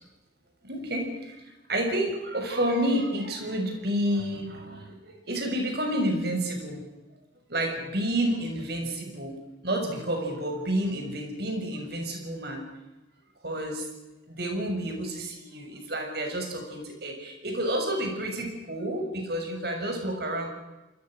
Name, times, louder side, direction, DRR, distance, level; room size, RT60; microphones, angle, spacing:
voice 1, 0.6-1.4 1.7-6.8 7.5-9.3 9.6-12.6 13.4-13.9 14.3-20.5, right 1 dB, 55° right, 3 dB, 6.5 m, -30 dB
29.5 x 21.0 x 6.4 m, 1.1 s
head